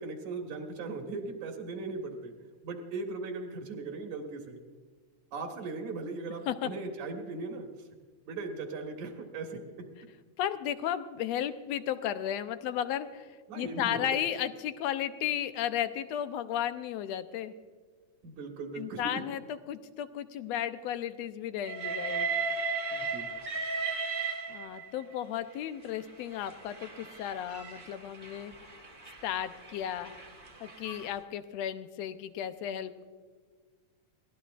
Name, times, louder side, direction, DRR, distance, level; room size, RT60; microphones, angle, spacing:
voice 1, 0.0-2.3 2.6-4.6 5.3-7.7 8.3-9.6 13.5-14.0 18.2-19.2 22.9-23.3, right 3 dB, 80° right, 1 dB, 3.0 m, -38 dB
voice 2, 10.4-17.5 18.7-19.4 19.7-22.3 24.5-28.5 29.2-30.1 30.6-33.0, left 10 dB, 75° left, 10 dB, 1.7 m, -34 dB
Train, 21.6-25.0 25.9-31.1, right 4 dB, 35° right, 0.7 m, -36 dB
22.5 x 17.5 x 2.5 m, 1.5 s
omnidirectional pair, 3.5 m